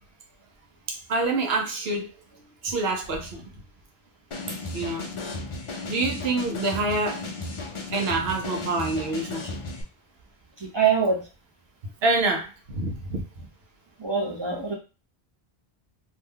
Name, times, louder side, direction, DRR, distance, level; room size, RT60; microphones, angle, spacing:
voice 1, 0.9-2.1 2.6-3.5 4.7-5.1 5.9-7.2 7.9-9.6 12.0-13.5, right 2 dB, 75° right, 2 dB, 0.9 m, -27 dB
sound 1, 4.3-9.8, left 3 dB, 40° left, 0.5 m, -35 dB
voice 2, 10.6-11.3 14.0-14.8, right 6 dB, 30° right, -2 dB, 0.7 m, -24 dB
2.8 x 2.2 x 3.5 m, 0.31 s
omnidirectional pair, 1.1 m